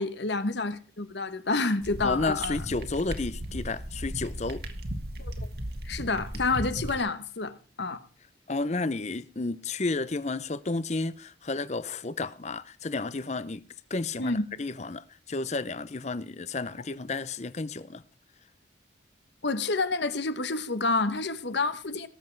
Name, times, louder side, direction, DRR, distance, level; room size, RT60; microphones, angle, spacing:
voice 1, 0.0-2.6 5.2-5.5 5.9-8.0 14.2-14.4 19.4-22.1, left 3 dB, 70° left, 1.2 m, -29 dB
sound 1, 1.8-7.0, right 1 dB, 55° right, 1.7 m, -36 dB
voice 2, 2.0-4.6 8.5-13.6 13.9-18.0, left 3 dB, 35° left, 0.6 m, -32 dB
18.5 x 7.7 x 4.6 m
head